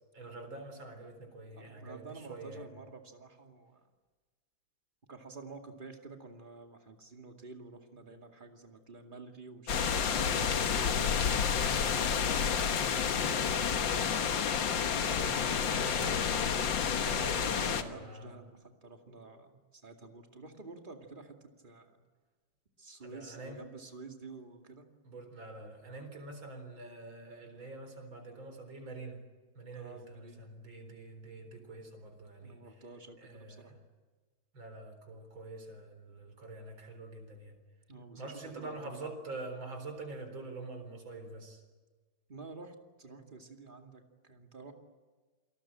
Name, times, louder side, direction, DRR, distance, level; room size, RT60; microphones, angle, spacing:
voice 1, 0.1-2.7 14.9-18.4 23.0-23.6 25.0-29.2 29.6-32.6 33.2-33.8 34.5-37.6 38.2-41.6, right 2 dB, 80° right, 6 dB, 4.7 m, -46 dB
voice 2, 1.6-3.8 5.1-12.8 13.3-14.0 17.6-21.3 21.6-21.9 22.8-24.9 29.7-30.5 32.4-33.7 37.9-39.0 42.3-44.0 44.3-44.7, right 3 dB, 25° right, 3 dB, 2.4 m, -50 dB
sound 1, 9.7-17.8, left 7 dB, 70° left, 2.0 m, -30 dB
28.0 x 19.5 x 8.9 m, 1.3 s
omnidirectional pair, 2.1 m